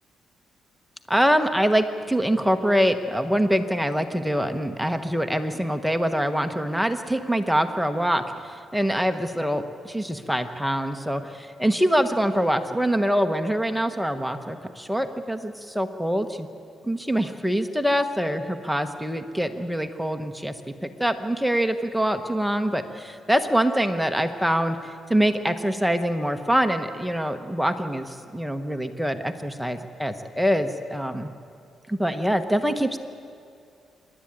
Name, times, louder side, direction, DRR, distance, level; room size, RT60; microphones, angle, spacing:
voice 1, 1.1-16.5 16.8-20.5 20.8-24.8 25.1-31.3 31.9-33.0, equal, ahead, 7 dB, 1.0 m, -24 dB
27.0 x 11.5 x 8.8 m, 2.4 s
cardioid pair, 105°, 0 cm